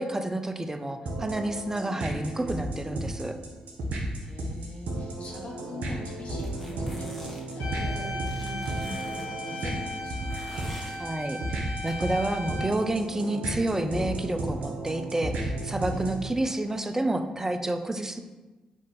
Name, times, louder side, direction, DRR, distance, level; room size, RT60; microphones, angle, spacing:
voice 1, 0.0-3.4 11.0-18.2, right 1 dB, 15° right, 8 dB, 0.4 m, -29 dB
sound 1, 1.1-16.3, right 2 dB, 70° right, 0.7 m, -34 dB
voice 2, 4.2-10.5 15.9-17.1, left 2 dB, 50° left, -2 dB, 1.0 m, -43 dB
sound 2, 6.4-7.6 8.3-9.3 10.3-11.0 11.9-12.0, equal, 5° left, 1.0 m, -46 dB
sound 3, 7.6-12.6, left 1 dB, 85° left, 1.2 m, -37 dB
3.6 x 2.5 x 4.0 m, 1.2 s
supercardioid pair, 50°, 3 cm